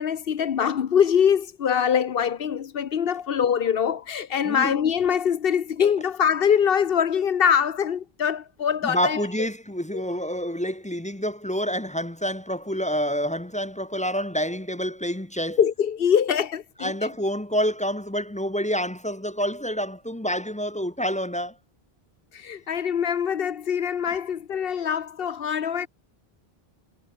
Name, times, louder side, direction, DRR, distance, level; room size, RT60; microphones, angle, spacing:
voice 1, 0.0-9.5 9.9-10.0 15.6-17.1 22.3-25.9, left 8 dB, 65° left, 1.0 m, -23 dB
voice 2, 8.8-15.6 16.8-21.5, equal, 10° left, 0.9 m, -28 dB
omnidirectional pair, 1.0 m